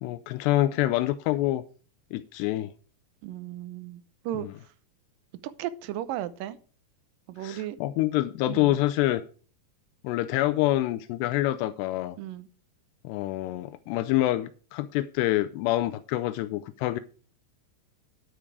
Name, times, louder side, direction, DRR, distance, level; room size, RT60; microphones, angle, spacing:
voice 1, 0.0-1.6 2.1-2.7 4.4-4.5 7.4-9.2 10.0-12.2 13.0-17.0, left 15 dB, 85° left, 12 dB, 2.8 m, -26 dB
voice 2, 3.2-4.5 5.4-6.6 7.3-7.8 8.5-8.8 12.2-12.5, right 12 dB, 75° right, 14 dB, 2.1 m, -35 dB
10.0 x 8.8 x 4.7 m, 0.39 s
omnidirectional pair, 4.8 m